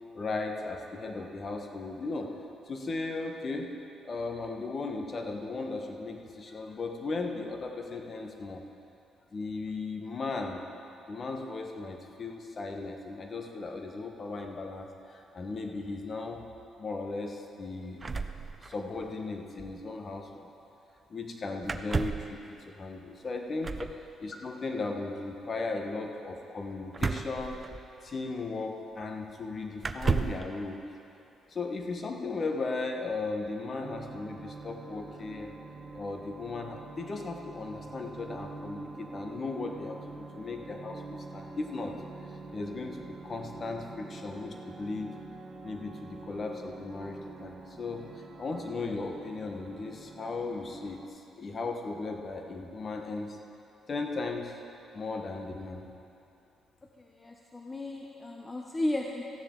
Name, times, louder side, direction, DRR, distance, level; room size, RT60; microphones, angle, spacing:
voice 1, 0.1-2.3 2.7-3.7 4.0-8.6 9.3-10.6 11.1-16.4 16.8-18.1 18.6-20.5 21.1-23.7 24.2-27.6 28.0-30.9 31.5-35.5 35.9-42.0 42.5-45.1 45.6-53.4 53.9-54.6 54.9-55.8, left 3 dB, 40° left, 3 dB, 1.1 m, -36 dB
sound 1, 18.0-19.1 19.3-19.4 19.6-19.8 21.6-22.4 23.6-24.0 26.9-28.1 29.0-29.1 29.8-30.5, right 4 dB, 30° right, 0.5 m, -32 dB
sound 2, 33.8-51.1, right 3 dB, 50° right, 1.1 m, -46 dB
voice 2, 57.0-59.2, left 1 dB, 25° left, 1 dB, 0.7 m, -34 dB
14.5 x 10.0 x 3.8 m, 2.8 s
cardioid pair, 90°, 0 cm